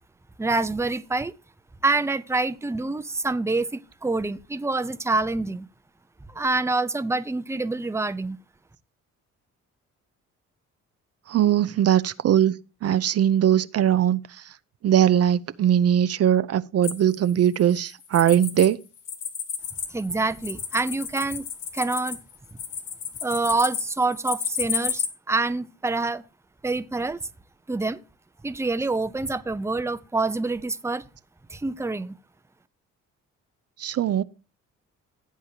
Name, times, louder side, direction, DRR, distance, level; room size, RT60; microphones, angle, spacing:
voice 1, 0.4-1.3 1.8-5.7 6.3-8.4 19.9-21.4 21.7-22.2 23.2-26.2 26.6-27.2 27.7-28.0 28.4-31.1 31.5-32.1, right 3 dB, 10° right, 0.7 m, -26 dB
voice 2, 11.3-12.5 12.8-14.5 14.8-18.8 33.8-34.2, right 10 dB, 55° right, 0.6 m, -20 dB
sound 1, 16.8-18.7 19.0-25.1, left 7 dB, 80° left, 2.1 m, -32 dB
16.0 x 8.3 x 2.8 m
cardioid pair, 90°, 30 cm